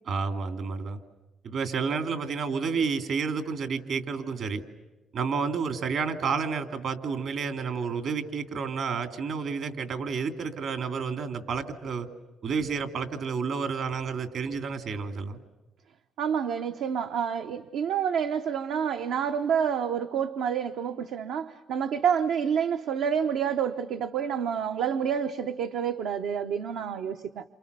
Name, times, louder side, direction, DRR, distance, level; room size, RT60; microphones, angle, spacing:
voice 1, 0.0-1.0 1.4-4.6 5.1-12.1 12.4-15.4, right 5 dB, 65° right, 8 dB, 2.6 m, -30 dB
voice 2, 16.2-27.4, right 7 dB, 85° right, 7 dB, 0.9 m, -28 dB
29.0 x 28.0 x 6.8 m, 1.1 s
cardioid pair, 95°, 0 cm